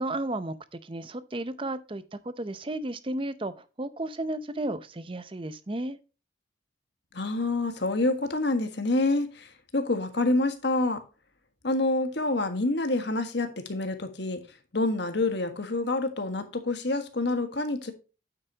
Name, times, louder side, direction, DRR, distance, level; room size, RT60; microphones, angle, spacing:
voice 1, 0.0-6.0, right 1 dB, 25° right, 0.6 m, -33 dB
voice 2, 7.1-11.0 11.6-14.4 14.7-17.9, left 2 dB, 60° left, 1.5 m, -27 dB
9.0 x 8.1 x 2.8 m
head